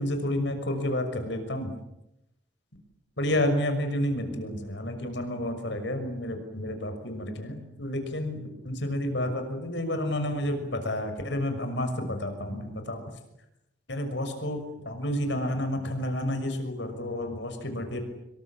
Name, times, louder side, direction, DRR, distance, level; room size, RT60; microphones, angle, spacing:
voice 1, 0.0-1.7 3.2-13.0 13.9-14.6 14.8-18.0, left 1 dB, 65° left, 7 dB, 6.3 m, -30 dB
26.5 x 23.5 x 8.9 m, 0.87 s
head